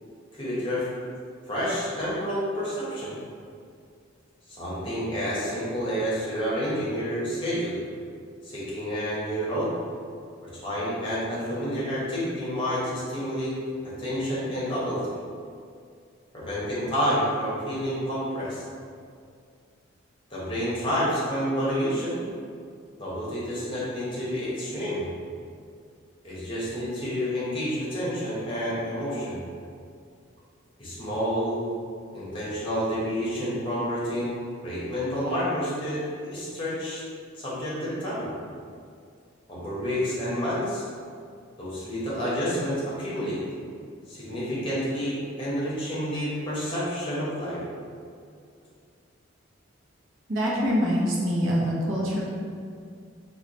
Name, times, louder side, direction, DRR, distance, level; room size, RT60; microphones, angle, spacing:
voice 1, 0.3-0.9 1.5-3.2 4.6-7.7 8.4-9.7 10.4-13.5 14.0-15.2 16.3-18.6 20.3-22.2 23.0-25.1 26.2-29.4 30.8-31.7 32.1-34.4 34.6-37.0 37.3-38.3 39.5-40.8 41.6-43.4 44.1-47.6, equal, 25° left, -8 dB, 0.9 m, -29 dB
voice 2, 50.3-52.2, equal, 70° right, -4 dB, 0.7 m, -24 dB
3.2 x 2.3 x 3.9 m, 2.2 s
head